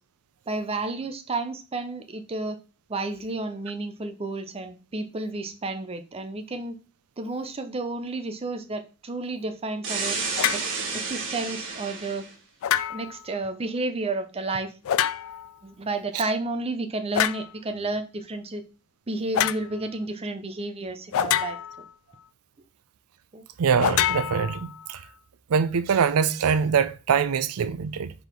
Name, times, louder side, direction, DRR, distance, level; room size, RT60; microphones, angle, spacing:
voice 1, 0.5-2.6 2.9-6.7 7.2-10.2 10.5-12.2 12.9-14.7 15.6-18.6 19.1-21.6 23.3-23.4, right 2 dB, 30° right, 0.7 m, -31 dB
sound 1, 9.8-12.3, right 4 dB, 60° right, 1.7 m, -31 dB
sound 2, 10.4-10.7 12.6-13.2 14.9-15.5 17.1-17.5 19.3-19.6 21.1-21.9 23.8-24.9, left 11 dB, 65° left, 0.3 m, -26 dB
voice 2, 23.6-25.0 25.5-28.1, right 6 dB, 85° right, 0.5 m, -23 dB
4.6 x 4.0 x 5.1 m
head